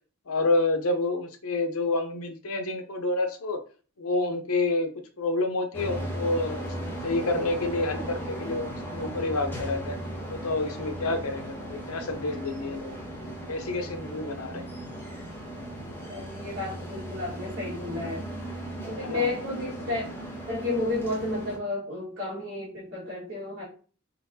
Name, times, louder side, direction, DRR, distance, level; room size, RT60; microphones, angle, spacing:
voice 1, 0.3-3.6 4.0-4.9 5.2-6.7 7.0-10.0 10.3-13.0 13.5-14.6 19.0-19.3, left 2 dB, 90° left, 6 dB, 0.8 m, -28 dB
sound 1, 5.7-21.6, right 1 dB, 10° left, 1.3 m, -37 dB
voice 2, 16.1-18.3 18.8-20.0 20.5-23.6, left 2 dB, 60° right, -8 dB, 2.1 m, -32 dB
4.5 x 4.1 x 2.8 m, 0.39 s
head